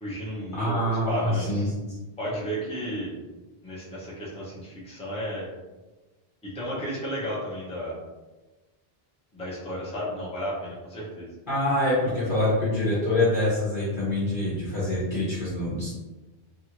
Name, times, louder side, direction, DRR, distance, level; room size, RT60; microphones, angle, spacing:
voice 1, 0.0-0.8 1.1-1.7 2.2-3.1 3.6-5.5 6.4-7.9 9.3-11.3, equal, 5° left, -7 dB, 0.7 m, -33 dB
voice 2, 0.5-1.9 11.5-15.9, left 1 dB, 55° left, -9 dB, 0.9 m, -25 dB
2.8 x 2.4 x 2.9 m, 1.1 s
omnidirectional pair, 1.0 m